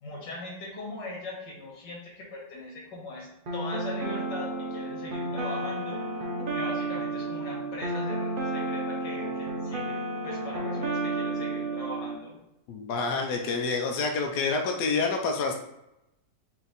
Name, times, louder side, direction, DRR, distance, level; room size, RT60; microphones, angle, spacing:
voice 1, 0.0-6.0 6.5-9.9 10.2-12.4, left 2 dB, 90° left, -3 dB, 2.1 m, -40 dB
sound 1, 3.5-12.2, right 2 dB, 60° right, 0.5 m, -32 dB
voice 2, 12.7-15.5, left 4 dB, 70° left, 3 dB, 1.1 m, -28 dB
4.2 x 2.8 x 4.0 m, 0.85 s
omnidirectional pair, 1.9 m